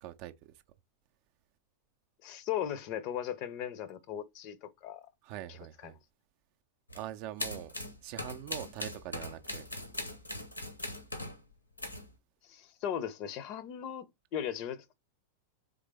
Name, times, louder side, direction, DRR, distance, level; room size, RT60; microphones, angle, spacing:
voice 1, 0.0-0.3 5.2-6.0 6.9-7.7 8.0-9.7, right 13 dB, 45° right, 0.4 m, -43 dB
voice 2, 2.2-5.1 5.5-5.6 5.8-5.9 12.4-14.9, left 10 dB, 40° left, 0.6 m, -37 dB
sound 1, 6.9-7.0 7.4-11.4 11.8-12.1, left 1 dB, 85° left, 1.0 m, -40 dB
3.7 x 3.2 x 3.2 m
figure-of-eight pair, 90°, 0 cm